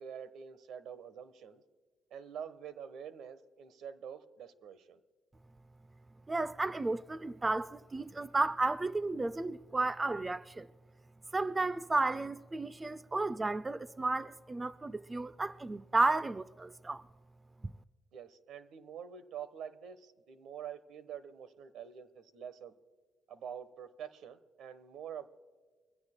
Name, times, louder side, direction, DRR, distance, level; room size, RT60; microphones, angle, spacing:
voice 1, 0.0-1.6 2.1-5.0 18.1-22.7 23.3-25.3, right 8 dB, 80° right, 1.1 m, -46 dB
voice 2, 6.3-10.7 11.3-17.0 17.6-17.7, right 3 dB, 20° right, 0.4 m, -33 dB
23.0 x 16.5 x 2.2 m
cardioid pair, 90°, 0 cm